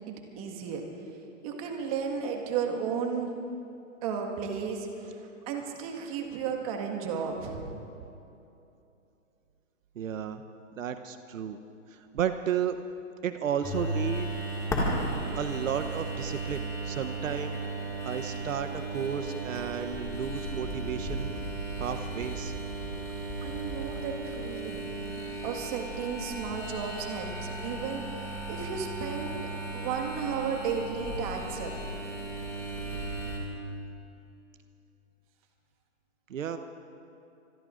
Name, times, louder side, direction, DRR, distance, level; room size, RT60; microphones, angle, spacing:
voice 1, 0.1-0.9 1.4-3.3 4.0-5.2 5.5-7.6 23.4-24.9 25.4-31.7, right 6 dB, 25° right, 2 dB, 1.7 m, -34 dB
voice 2, 10.0-10.4 10.8-11.6 11.9-12.8 13.2-14.3 15.3-17.6 18.0-21.3 21.8-22.5 36.3-36.6, right 8 dB, 75° right, 8 dB, 0.9 m, -33 dB
sound 1, 13.6-33.4, right 2 dB, 10° left, 2.0 m, -35 dB
26.0 x 21.5 x 2.5 m, 2.8 s
hypercardioid pair, 160°, 39 cm